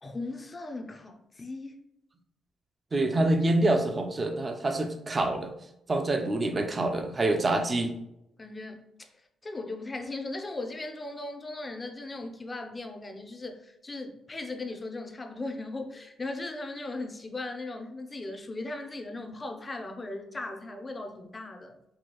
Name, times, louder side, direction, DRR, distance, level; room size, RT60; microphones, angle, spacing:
voice 1, 0.0-1.8 8.4-9.1 9.4-21.8, left 2 dB, 25° left, 5 dB, 0.5 m, -38 dB
voice 2, 2.9-5.5 5.9-7.9, right 2 dB, 30° right, 7 dB, 0.5 m, -26 dB
4.6 x 2.3 x 3.0 m, 0.80 s
cardioid pair, 90°, 0 cm